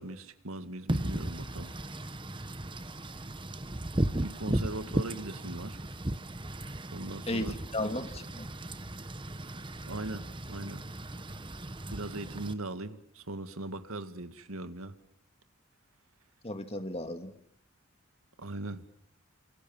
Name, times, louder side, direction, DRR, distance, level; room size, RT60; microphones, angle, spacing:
voice 1, 0.0-1.7 4.2-5.8 6.9-7.6 9.9-10.9 11.9-15.0 18.4-18.8, right 2 dB, 90° right, 10 dB, 2.1 m, -39 dB
Wind / Rain, 0.9-12.5, right 1 dB, 25° right, 1.1 m, -36 dB
voice 2, 7.3-8.5 16.4-17.3, left 1 dB, 30° left, 7 dB, 2.2 m, -35 dB
29.5 x 27.0 x 7.3 m, 0.67 s
head